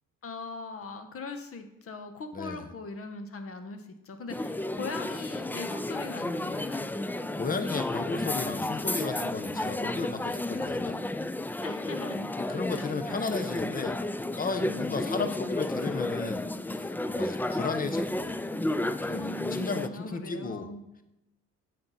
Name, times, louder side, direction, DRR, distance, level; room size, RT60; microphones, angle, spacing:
voice 1, 0.2-6.9 11.6-12.3 12.7-12.9 14.6-15.5 19.1-20.8, left 3 dB, 50° left, 7 dB, 1.3 m, -40 dB
voice 2, 2.3-2.7 7.4-11.0 12.5-14.0 14.3-18.4 19.0-20.7, left 4 dB, 30° left, 9 dB, 1.0 m, -34 dB
sound 1, 4.3-19.9, left 1 dB, 5° left, 0.3 m, -32 dB
8.7 x 6.7 x 4.2 m, 0.90 s
cardioid pair, 90°, 30 cm